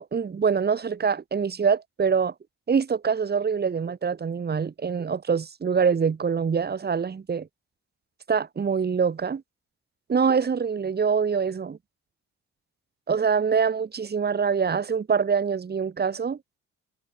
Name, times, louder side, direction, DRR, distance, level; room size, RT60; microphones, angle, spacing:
voice 1, 0.0-2.3 2.7-7.5 8.3-9.4 10.1-11.8 13.1-16.4, right 6 dB, 35° right, 1.5 m, -24 dB
cardioid pair, 90°, 30 cm